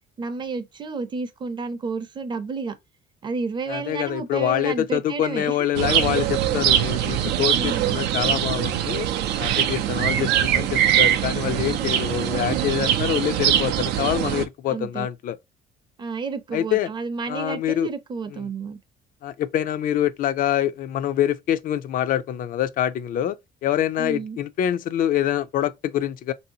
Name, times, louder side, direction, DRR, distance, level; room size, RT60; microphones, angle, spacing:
voice 1, 0.2-2.8 3.2-5.7 7.5-8.0 11.8-11.9 14.7-15.1 16.0-18.8 24.0-24.4, right 4 dB, 25° right, 0.6 m, -31 dB
voice 2, 3.7-9.1 9.4-15.4 16.5-16.9 17.3-17.9 18.3-18.4 19.2-23.4 23.6-26.3, left 11 dB, 55° left, 0.4 m, -25 dB
sound 1, 5.7-14.4, right 11 dB, 80° right, 0.4 m, -22 dB
3.3 x 2.7 x 2.7 m
cardioid pair, 110°, 17 cm